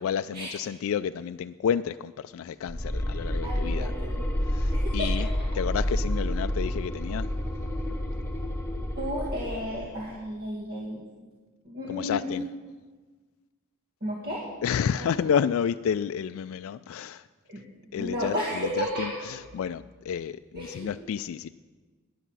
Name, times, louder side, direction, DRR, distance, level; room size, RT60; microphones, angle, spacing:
voice 1, 0.0-3.9 4.4-5.3 5.5-7.3 11.9-12.5 14.6-17.3 17.9-21.5, left 7 dB, 65° left, 11 dB, 0.3 m, -30 dB
sound 1, 2.7-9.9, equal, 15° left, 1.4 m, -29 dB
voice 2, 3.4-4.3 4.7-5.3 8.9-11.1 11.6-12.3 14.0-14.5 14.9-15.2 17.5-17.7 18.0-19.3 20.5-20.9, equal, 45° right, -4 dB, 1.9 m, -33 dB
13.5 x 10.0 x 6.2 m, 1.4 s
head